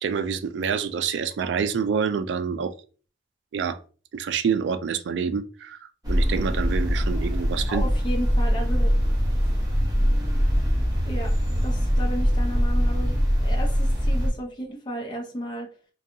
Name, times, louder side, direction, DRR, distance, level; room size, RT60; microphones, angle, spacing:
voice 1, 0.0-2.7 3.5-3.8 4.1-5.8 6.1-7.8, right 6 dB, 80° right, 12 dB, 0.3 m, -27 dB
sound 1, 6.0-14.3, equal, 25° right, 0.8 m, -22 dB
voice 2, 7.7-8.9 11.1-15.7, equal, 25° left, 0 dB, 0.6 m, -34 dB
2.7 x 2.2 x 2.6 m, 0.38 s
head